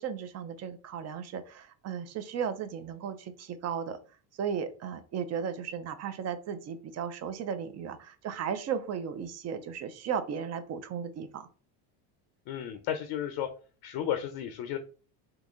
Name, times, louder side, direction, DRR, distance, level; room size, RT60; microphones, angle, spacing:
voice 1, 0.0-4.0 4.4-11.5, right 7 dB, 35° right, 11 dB, 0.4 m, -35 dB
voice 2, 12.5-13.5 13.8-14.8, left 10 dB, 55° left, 7 dB, 0.5 m, -33 dB
3.9 x 2.7 x 2.4 m, 0.38 s
supercardioid pair, 95°, 47 cm